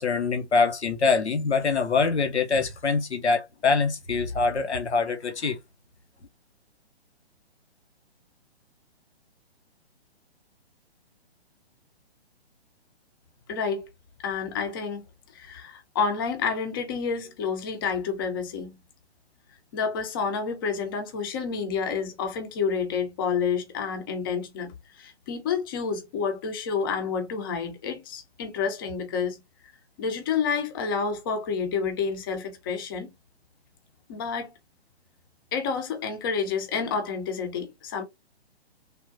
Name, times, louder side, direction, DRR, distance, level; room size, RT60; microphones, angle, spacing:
voice 1, 0.0-5.6, left 4 dB, 90° left, 0.7 m, -24 dB
voice 2, 13.5-13.9 14.2-15.0 15.3-18.8 19.7-29.4 30.0-33.1 34.1-34.5 35.5-38.0, left 5 dB, 20° left, 0.5 m, -29 dB
3.5 x 2.2 x 2.4 m
figure-of-eight pair, 130°, 33 cm